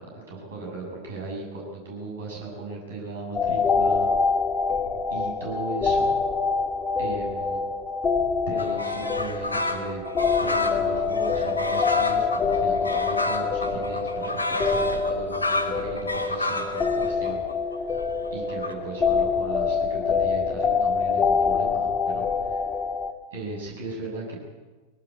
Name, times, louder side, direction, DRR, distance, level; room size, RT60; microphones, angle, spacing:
voice 1, 0.0-4.1 5.1-6.1 7.0-7.7 8.5-10.1 10.4-17.4 18.3-22.7 23.3-24.4, right 3 dB, 60° right, -1 dB, 7.6 m, -37 dB
sound 1, 3.3-23.1, left 5 dB, 20° left, 1.9 m, -25 dB
sound 2, 8.6-18.7, left 2 dB, 80° left, 2.4 m, -30 dB
21.0 x 18.5 x 8.7 m, 1.3 s
figure-of-eight pair, 90°, 0 cm